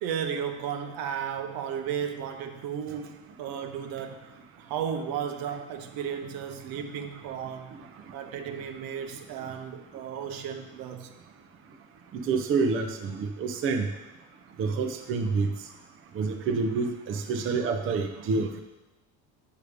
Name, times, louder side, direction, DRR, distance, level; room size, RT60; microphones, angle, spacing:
voice 1, 0.0-7.8 8.1-11.1, right 8 dB, 70° right, 6 dB, 0.9 m, -34 dB
voice 2, 12.1-13.9 14.6-15.5 16.1-18.5, right 4 dB, 35° right, 4 dB, 0.6 m, -27 dB
8.4 x 5.1 x 5.0 m, 1.0 s
cardioid pair, 150°, 35 cm